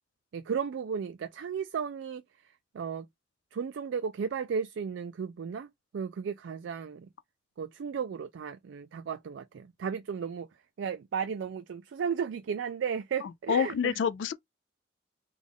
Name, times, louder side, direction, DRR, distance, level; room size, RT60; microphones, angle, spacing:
voice 1, 0.3-2.2 2.7-3.1 3.5-7.1 7.6-10.5 10.8-14.0, right 6 dB, 75° right, 0.3 m, -34 dB
voice 2, 13.2-14.3, left 7 dB, 70° left, 0.3 m, -28 dB
3.5 x 2.4 x 3.5 m
head